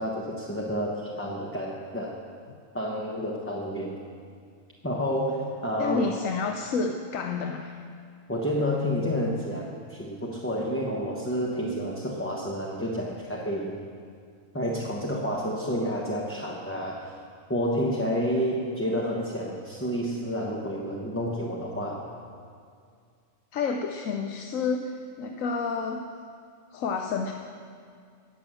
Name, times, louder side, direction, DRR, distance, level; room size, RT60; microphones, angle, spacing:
voice 1, 0.0-2.2 2.7-4.0 4.8-6.0 8.3-13.8 14.5-17.1 17.5-22.1 25.3-25.4, equal, 10° left, -3 dB, 1.1 m, -29 dB
voice 2, 5.8-7.7 23.5-26.0 26.7-27.3, left 5 dB, 80° left, 4 dB, 1.1 m, -29 dB
18.5 x 7.0 x 7.6 m, 2.3 s
omnidirectional pair, 1.4 m